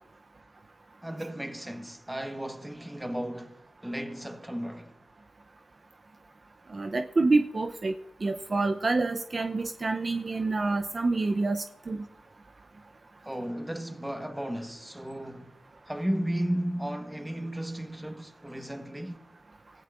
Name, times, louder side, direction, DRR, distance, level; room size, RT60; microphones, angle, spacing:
voice 1, 1.0-4.9 13.2-15.6 15.9-19.2, right 1 dB, 10° right, 1.2 m, -34 dB
voice 2, 6.7-7.9 8.2-12.0, right 3 dB, 40° right, 0.6 m, -27 dB
24.0 x 14.0 x 2.5 m
cardioid pair, 75°, 0 cm